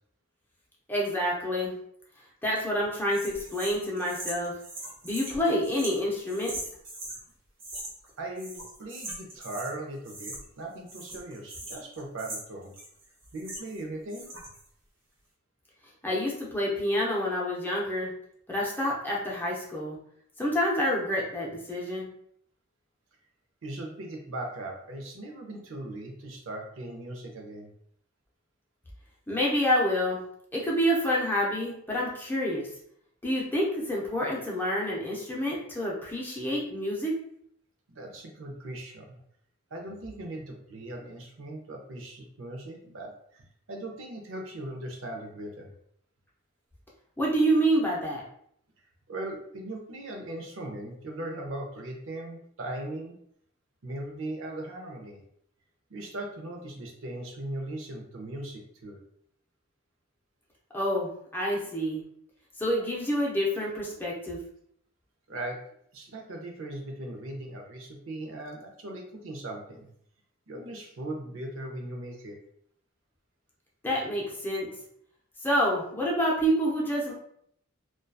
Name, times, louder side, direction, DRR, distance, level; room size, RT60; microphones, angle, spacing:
voice 1, 0.9-1.8 2.4-4.5 5.0-6.5 16.0-18.1 18.5-20.0 20.4-22.1 29.3-30.2 30.5-32.6 33.2-37.2 47.2-48.2 60.7-62.0 62.6-64.4 73.8-74.7 75.4-77.1, equal, 10° left, -4 dB, 0.5 m, -28 dB
sound 1, 3.1-7.2 7.6-8.1 8.4-9.8 10.0-10.6 10.9-13.8 14.1-14.6, right 2 dB, 60° right, 0.9 m, -41 dB
voice 2, 8.2-12.7 13.3-14.3 23.6-27.7 37.9-39.2 39.7-45.7 49.1-53.2 53.8-55.2 55.9-59.0 65.3-65.6 65.9-69.9 70.5-72.4, right 1 dB, 75° right, 1 dB, 0.6 m, -39 dB
2.6 x 2.2 x 2.2 m, 0.67 s
head